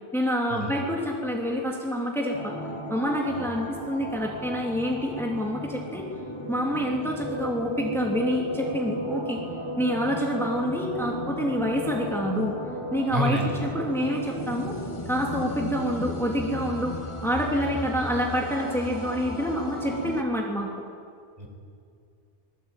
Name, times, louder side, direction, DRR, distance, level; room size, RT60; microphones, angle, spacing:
voice 1, 0.1-2.5 2.9-6.1 6.5-9.4 9.8-12.6 12.9-14.8 15.1-20.7, equal, ahead, -1 dB, 2.6 m, -27 dB
sound 1, 2.3-20.2, equal, 25° left, 2.1 m, -34 dB
voice 2, 13.1-13.5 21.4-21.5, equal, 35° right, 1 dB, 4.6 m, -27 dB
25.5 x 21.0 x 8.9 m, 2.4 s
omnidirectional pair, 1.2 m